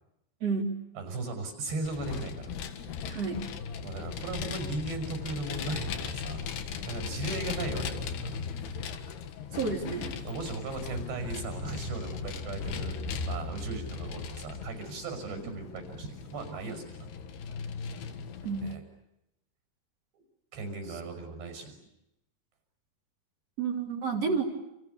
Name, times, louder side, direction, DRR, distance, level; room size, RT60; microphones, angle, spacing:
voice 1, 0.4-0.7 3.1-3.5 9.5-10.1 18.4-18.6 23.6-24.4, right 5 dB, 40° right, 2 dB, 4.3 m, -30 dB
voice 2, 1.0-2.5 3.8-6.5 6.8-8.3 9.6-9.7 10.2-13.0 13.3-17.1 18.6-18.8 20.5-21.8, right 3 dB, 85° right, 7 dB, 8.1 m, -37 dB
Vehicle, 1.8-18.8, left 6 dB, 75° left, 3.7 m, -37 dB
30.0 x 29.0 x 6.9 m, 0.86 s
omnidirectional pair, 4.8 m